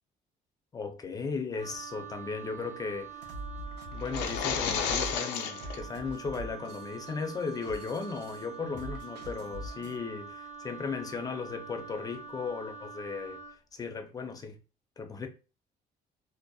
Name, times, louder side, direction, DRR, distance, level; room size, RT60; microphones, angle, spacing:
voice 1, 0.7-3.1 3.9-13.4 13.7-14.6 15.0-15.3, left 5 dB, 20° left, 0.5 m, -36 dB
Wind instrument woodwind instrument, 1.5-13.6, right 6 dB, 40° right, 0.5 m, -45 dB
sound 1, 3.0-10.0, right 1 dB, 85° right, 0.6 m, -43 dB
sound 2, 4.0-5.8, left 7 dB, 90° left, 0.4 m, -31 dB
2.6 x 2.0 x 2.3 m
cardioid pair, 110°, 17 cm